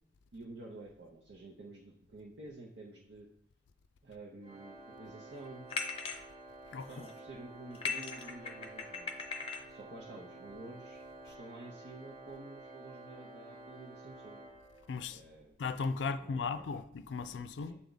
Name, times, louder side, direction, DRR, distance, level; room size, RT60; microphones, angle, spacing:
voice 1, 0.3-3.3 4.0-5.7 6.9-9.3 9.7-14.4 15.1-15.6 16.1-16.6 17.6-17.8, right 2 dB, 75° right, 0.8 m, -50 dB
Organ, 4.4-15.2, right 2 dB, 35° right, 0.7 m, -51 dB
sound 1, 5.7-6.2 6.8-7.2 7.7-9.7, left 5 dB, 30° left, 0.6 m, -39 dB
voice 2, 14.9-15.2 15.6-17.8, left 4 dB, 85° left, 0.4 m, -36 dB
7.6 x 3.5 x 3.9 m
head